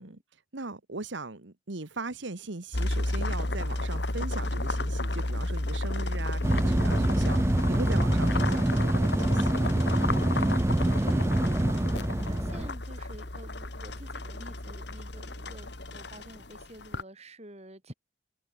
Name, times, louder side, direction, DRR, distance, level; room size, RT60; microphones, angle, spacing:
voice 1, 0.0-9.8, right 3 dB, 75° right, 1.5 m, -39 dB
sound 1, 2.7-17.0, left 1 dB, 65° left, 2.4 m, -32 dB
sound 2, 6.4-12.7, right 1 dB, 15° right, 0.5 m, -25 dB
voice 2, 10.6-17.9, right 1 dB, 35° right, 4.6 m, -48 dB
head